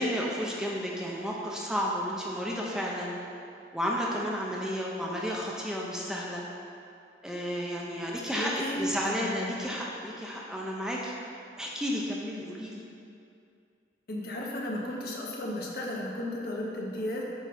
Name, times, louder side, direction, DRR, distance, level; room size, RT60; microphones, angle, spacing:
voice 1, 0.0-3.1 3.7-6.4 7.2-11.1 11.6-12.8, equal, 5° right, -3 dB, 0.7 m, -32 dB
voice 2, 8.3-9.5 14.1-17.2, left 1 dB, 55° left, -3 dB, 1.2 m, -34 dB
9.0 x 3.9 x 5.8 m, 2.5 s
head